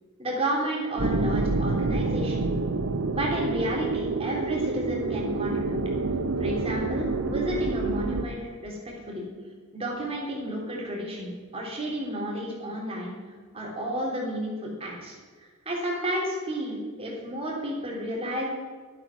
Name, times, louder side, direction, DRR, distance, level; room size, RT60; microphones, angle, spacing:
voice 1, 0.2-2.5 3.1-5.8 6.4-9.3 9.7-18.4, right 1 dB, 25° right, -3 dB, 3.5 m, -32 dB
sound 1, 1.0-8.3, right 3 dB, 70° right, 0.7 m, -28 dB
13.0 x 8.3 x 6.1 m, 1.5 s
head